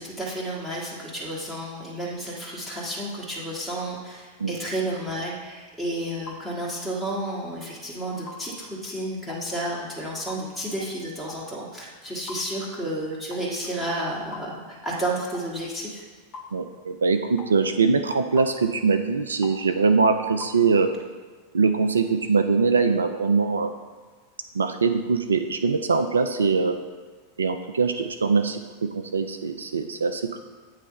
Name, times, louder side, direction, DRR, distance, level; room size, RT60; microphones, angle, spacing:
voice 1, 0.0-16.0, right 1 dB, 10° left, -4 dB, 1.5 m, -31 dB
sound 1, 6.3-6.4 7.3-7.5 8.3-8.4 9.3-9.5 10.3-10.5 11.3-11.5 12.3-12.4 13.3-13.5 14.3-14.5 15.3-15.5 16.3-16.5 17.4-17.6 18.4-18.6 19.4-19.6 20.4-20.6, left 4 dB, 35° left, 0.9 m, -40 dB
voice 2, 16.5-20.9 21.5-23.7 24.5-26.8 27.4-30.4, right 4 dB, 70° right, 8 dB, 0.4 m, -22 dB
8.3 x 3.2 x 6.4 m, 1.4 s
figure-of-eight pair, 90°, 0 cm